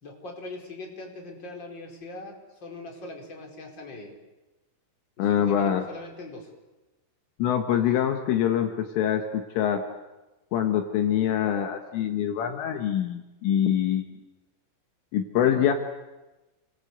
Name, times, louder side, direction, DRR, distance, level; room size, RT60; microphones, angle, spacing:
voice 1, 0.0-4.1 5.2-6.5, left 2 dB, 20° left, 1 dB, 4.8 m, -41 dB
voice 2, 5.2-5.8 7.4-9.8 10.5-14.0 15.1-15.7, left 10 dB, 75° left, 6 dB, 3.9 m, -24 dB
29.5 x 23.5 x 8.1 m, 1.1 s
omnidirectional pair, 6.0 m